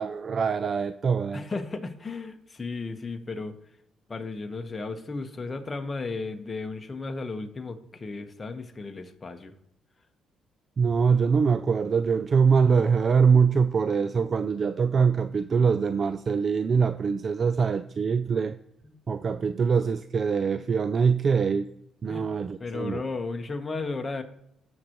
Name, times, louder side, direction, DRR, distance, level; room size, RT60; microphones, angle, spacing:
voice 1, 0.0-1.4 10.8-18.6 19.1-21.7 22.0-23.0, right 5 dB, 45° right, 0.4 m, -23 dB
voice 2, 1.3-3.5 4.1-9.5 18.9-19.0 22.1-22.3 22.6-24.2, left 3 dB, 25° left, 1.2 m, -34 dB
16.5 x 6.5 x 3.0 m
cardioid pair, 90°, 0 cm